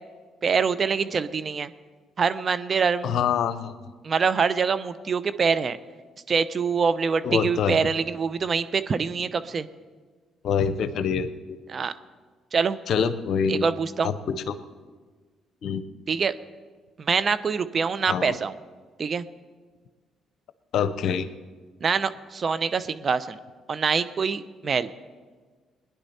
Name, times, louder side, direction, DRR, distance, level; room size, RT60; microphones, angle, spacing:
voice 1, 0.4-1.7 2.2-3.1 4.0-5.8 6.3-9.7 11.7-11.9 12.5-12.8 13.5-14.1 16.1-16.3 17.0-18.5 19.0-19.2 21.8-23.4 23.7-24.9, right 5 dB, 45° right, 13 dB, 0.7 m, -25 dB
voice 2, 3.0-3.7 7.2-7.9 10.4-11.6 12.9-13.7 14.0-14.6 15.6-15.8 18.1-18.3 20.7-21.3, left 7 dB, 65° left, 12 dB, 0.8 m, -25 dB
21.0 x 10.5 x 4.3 m, 1.4 s
hypercardioid pair, 50°, 0 cm